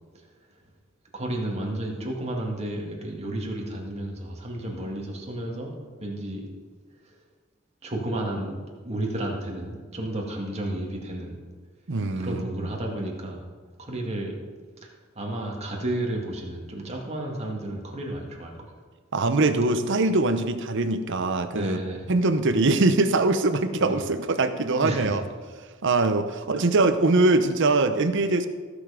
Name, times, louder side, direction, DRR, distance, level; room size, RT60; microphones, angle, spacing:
voice 1, 1.1-5.7 6.0-6.5 7.8-8.6 8.8-11.4 12.2-13.5 13.8-14.3 14.8-18.7 21.5-22.1 23.8-24.0 24.8-25.2, right 1 dB, 30° right, -1 dB, 2.2 m, -32 dB
voice 2, 11.9-12.7 19.1-21.8 22.1-25.2 25.8-28.5, right 2 dB, 60° right, 9 dB, 0.8 m, -22 dB
15.5 x 7.0 x 5.1 m, 1.5 s
head